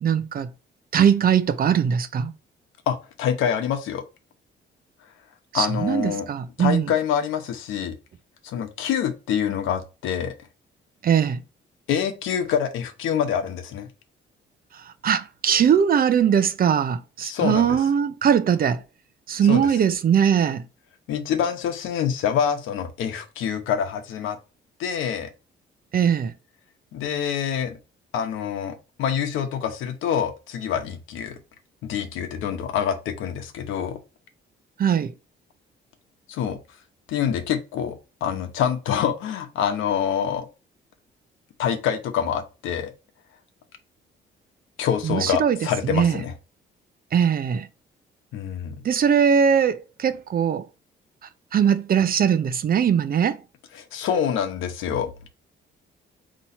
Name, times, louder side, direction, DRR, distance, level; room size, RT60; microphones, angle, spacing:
voice 1, 0.0-0.5 0.9-2.3 5.5-6.9 11.0-11.4 14.7-18.8 19.3-20.6 25.9-26.3 34.8-35.1 45.0-45.6 45.8-46.2 47.1-47.7 48.8-50.7 51.5-53.4, right 8 dB, 50° right, 0.6 m, -20 dB
voice 2, 2.9-4.0 5.5-6.2 6.6-7.9 8.4-10.3 11.9-13.9 17.2-17.8 19.4-19.6 21.1-24.4 24.8-25.3 26.9-27.8 28.1-31.4 31.8-34.0 36.3-36.6 37.1-38.0 38.2-40.5 41.6-42.9 44.8-46.3 48.3-48.8 53.9-55.1, left 8 dB, 90° left, 0.9 m, -26 dB
4.2 x 3.0 x 4.1 m
cardioid pair, 90°, 20 cm